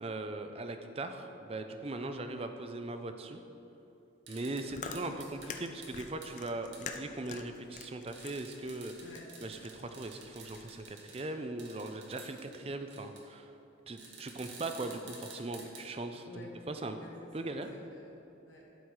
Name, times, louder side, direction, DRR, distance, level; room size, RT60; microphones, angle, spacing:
voice 1, 0.0-3.4 4.3-8.9 9.4-13.5 13.9-17.0 17.3-17.7, right 2 dB, 30° right, 7 dB, 0.5 m, -39 dB
sound 1, 4.3-4.6 5.0-5.5 5.8-5.9 6.2-6.3 6.7-6.8 8.1-11.2 11.6-12.6 12.9-13.2 14.0-15.8, right 4 dB, 75° right, 1.4 m, -51 dB
voice 2, 4.4-4.7 9.0-9.3 12.4-12.7 14.0-14.2 16.2-17.1 17.4-18.6, left 1 dB, 85° left, -3 dB, 1.7 m, -52 dB
Chewing mastication, 4.4-10.8, left 5 dB, 40° left, 0.5 m, -47 dB
12.0 x 4.7 x 4.7 m, 3.0 s
head